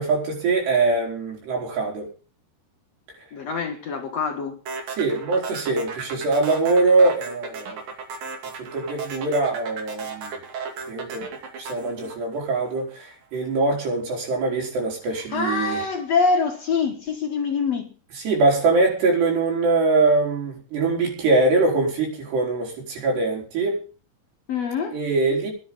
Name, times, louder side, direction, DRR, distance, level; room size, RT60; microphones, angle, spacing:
voice 1, 0.0-2.1 5.0-7.9 8.6-10.3 10.9-11.3 11.6-15.8 18.2-23.8 24.9-25.5, right 3 dB, 75° right, 6.4 m, -22 dB
voice 2, 3.3-4.6 15.1-17.9 24.5-25.0, left 4 dB, 60° left, 1.7 m, -25 dB
sound 1, 4.7-13.0, right 5 dB, 55° right, 4.0 m, -34 dB
15.5 x 11.0 x 5.4 m
omnidirectional pair, 4.9 m